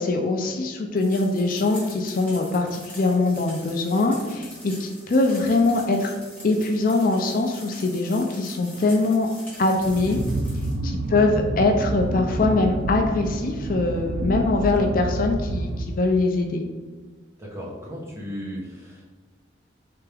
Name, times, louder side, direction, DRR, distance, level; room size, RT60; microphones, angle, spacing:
voice 1, 0.0-6.1 6.4-9.3 9.6-10.2 10.8-16.7, left 2 dB, 45° left, 3 dB, 0.4 m, -22 dB
sound 1, 1.0-10.7, left 1 dB, 10° left, 1.2 m, -44 dB
sound 2, 9.8-16.3, right 1 dB, 70° right, 0.4 m, -28 dB
voice 2, 17.4-19.1, equal, 15° right, -4 dB, 0.9 m, -36 dB
3.4 x 3.4 x 3.3 m, 1.4 s
head